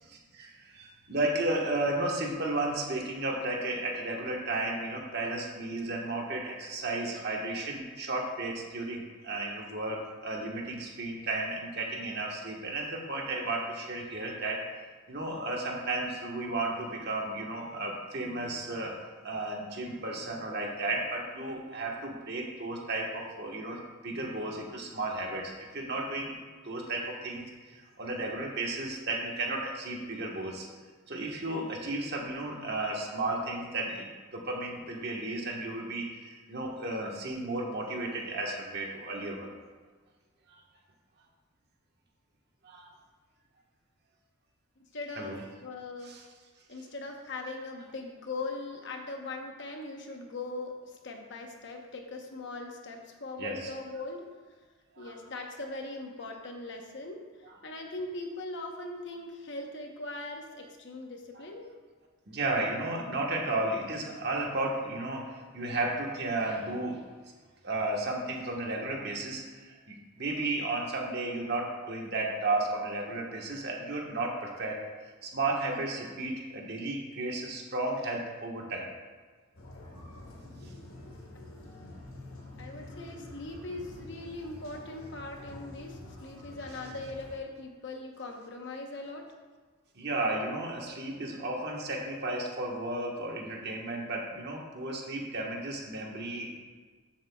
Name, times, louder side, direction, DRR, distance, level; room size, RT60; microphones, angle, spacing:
voice 1, 0.1-14.6 15.1-19.0 19.2-26.4 26.6-30.7 31.1-39.5 42.6-42.9 45.2-45.4 46.0-46.2 53.4-53.7 55.0-55.2 62.3-67.0 67.6-74.8 75.2-78.8 89.9-96.6, right 2 dB, 50° right, 0 dB, 1.4 m, -33 dB
voice 2, 44.8-46.2 46.7-54.3 55.0-61.7 82.6-89.3, left 2 dB, 55° left, 2 dB, 1.0 m, -40 dB
sound 1, 79.5-87.4, left 1 dB, 85° left, 1.6 m, -47 dB
13.0 x 7.4 x 2.3 m, 1.4 s
head